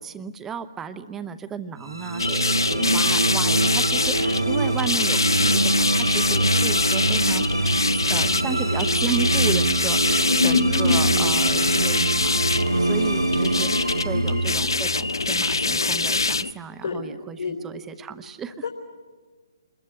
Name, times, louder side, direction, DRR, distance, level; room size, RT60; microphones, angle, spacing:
voice 1, 0.0-7.7 7.9-12.4 12.8-18.7, right 7 dB, 10° right, 10 dB, 0.9 m, -34 dB
sound 1, 1.8-16.2, right 2 dB, 80° right, 0.8 m, -24 dB
sound 2, 2.2-16.5, left 3 dB, 65° left, 0.7 m, -24 dB
voice 2, 10.3-11.0 14.1-14.3 16.8-17.0 17.4-17.5 18.6-18.7, left 4 dB, 50° left, 2 dB, 3.9 m, -24 dB
26.5 x 21.5 x 9.7 m, 1.5 s
figure-of-eight pair, 135°, 2 cm